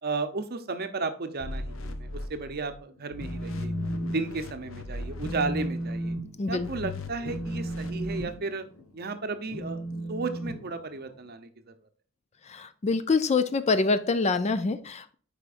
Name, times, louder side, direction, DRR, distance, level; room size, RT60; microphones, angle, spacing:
voice 1, 0.0-3.7 4.1-6.2 6.5-8.7 8.9-11.5, right 3 dB, 50° right, 9 dB, 0.7 m, -34 dB
sound 1, 1.4-2.8 3.1-6.0 6.5-8.2, left 2 dB, 70° left, 0.8 m, -39 dB
Telephone, 3.0-4.2 4.5-4.8 5.2-11.3, right 1 dB, 90° left, 1.2 m, -35 dB
voice 2, 6.4-6.7 12.5-15.1, left 4 dB, 35° left, 12 dB, 0.4 m, -25 dB
8.4 x 5.0 x 2.5 m, 0.44 s
head